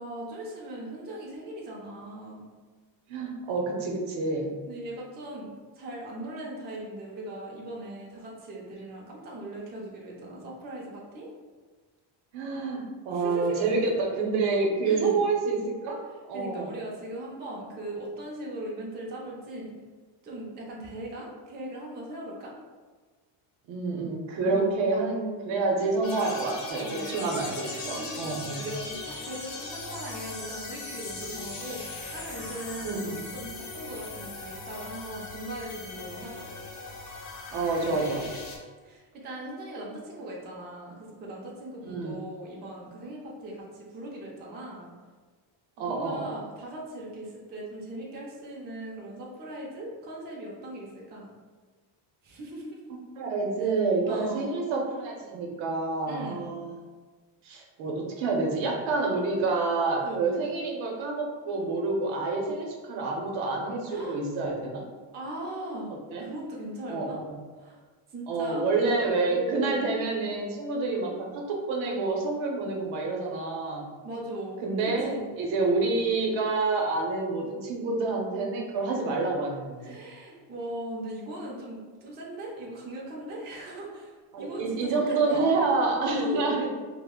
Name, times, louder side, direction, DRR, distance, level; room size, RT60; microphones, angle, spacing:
voice 1, 0.0-2.4 4.7-11.3 13.1-13.8 14.8-15.3 16.3-19.7 20.2-22.5 24.5-24.7 26.8-27.1 28.0-36.4 38.8-44.9 45.8-51.3 52.2-52.9 53.6-53.7 54.0-54.5 56.1-56.5 60.0-60.4 63.9-64.2 65.1-67.2 67.6-67.8 68.1-69.8 74.0-75.3 79.8-85.5 86.0-86.6, right 1 dB, 20° right, -3 dB, 0.4 m, -39 dB
voice 2, 3.1-4.5 12.3-16.0 16.2-16.8 23.7-28.7 32.8-33.2 37.5-38.3 41.8-42.3 45.8-46.3 52.9-56.7 57.4-64.8 65.9-66.2 66.9-67.4 68.3-73.9 74.6-80.0 84.3-86.7, right 3 dB, 70° right, 0 dB, 0.7 m, -28 dB
sound 1, 26.0-38.6, left 3 dB, 40° left, 0.6 m, -39 dB
2.4 x 2.1 x 3.5 m, 1.4 s
cardioid pair, 140°, 49 cm